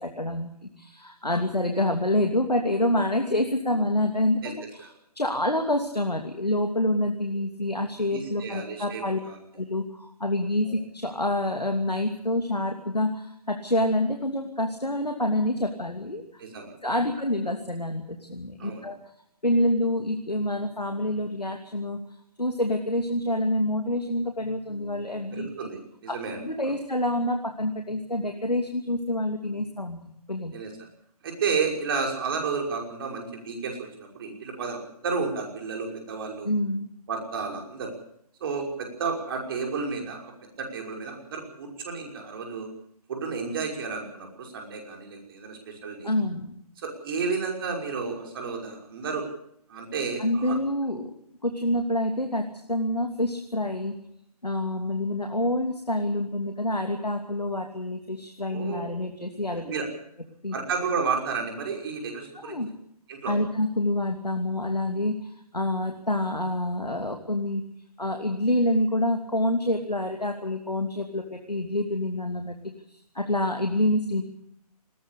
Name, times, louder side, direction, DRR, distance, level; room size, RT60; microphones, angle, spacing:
voice 1, 0.0-9.2 9.5-16.4 16.8-19.0 19.4-22.0 22.4-25.5 26.1-26.2 26.4-30.0 30.3-30.6 36.4-36.9 46.0-46.6 50.2-51.1 51.4-53.9 54.4-59.7 60.4-60.5 62.4-62.7 63.3-67.6 68.0-72.6 72.9-74.2, left 1 dB, 90° left, 4 dB, 2.8 m, -27 dB
voice 2, 8.1-9.4 10.6-10.7 16.4-17.1 18.6-18.8 25.3-26.4 26.7-26.8 30.5-30.7 31.2-36.5 37.1-37.9 38.4-40.3 40.6-42.7 43.1-46.1 46.8-49.2 49.7-50.6 58.5-58.8 59.5-59.9 60.5-62.6 63.1-63.3, right 5 dB, 35° right, 2 dB, 5.8 m, -32 dB
20.5 x 18.0 x 8.4 m, 0.72 s
figure-of-eight pair, 140°, 20 cm